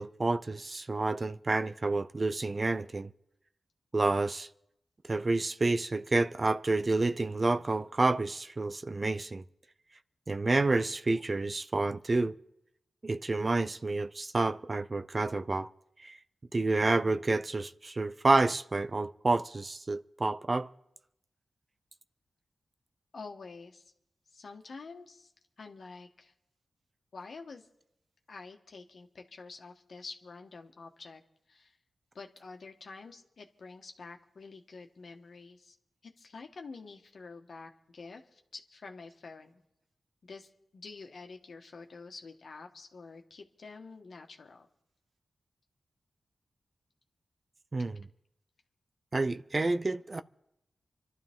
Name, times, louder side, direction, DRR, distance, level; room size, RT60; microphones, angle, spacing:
voice 1, 0.0-3.1 3.9-4.5 5.1-9.4 10.3-12.4 13.0-15.7 16.0-16.2 16.5-20.7 47.7-48.0 49.1-50.2, right 3 dB, 45° right, 0.6 m, -29 dB
voice 2, 23.1-23.9 24.3-25.3 25.6-26.3 27.1-27.7 28.3-31.2 31.5-31.8 32.1-35.8 36.0-39.6 40.2-44.7, left 4 dB, 70° left, 1.5 m, -48 dB
25.5 x 12.0 x 3.7 m
cardioid pair, 45°, 0 cm